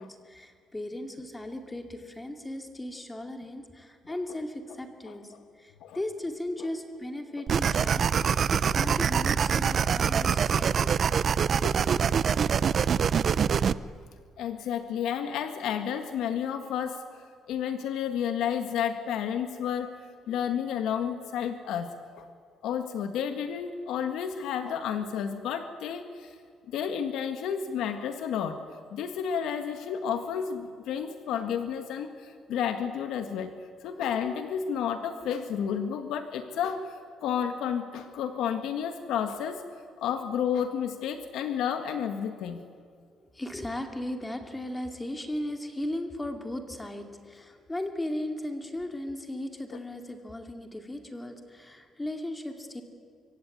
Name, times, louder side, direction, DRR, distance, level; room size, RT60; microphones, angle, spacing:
voice 1, 0.0-5.3 5.5-10.9 11.5-11.7 12.0-12.1 43.3-52.8, left 1 dB, 10° left, 5 dB, 2.4 m, -36 dB
sound 1, 7.5-13.7, right 7 dB, 35° right, 0.6 m, -25 dB
voice 2, 14.4-17.2 17.5-19.9 20.3-21.9 22.1-22.3 22.6-26.3 26.7-28.6 28.9-36.8 37.2-39.6 40.0-42.6, left 8 dB, 75° left, 7 dB, 1.8 m, -31 dB
25.5 x 24.0 x 9.6 m, 2.3 s
cardioid pair, 175°, 0 cm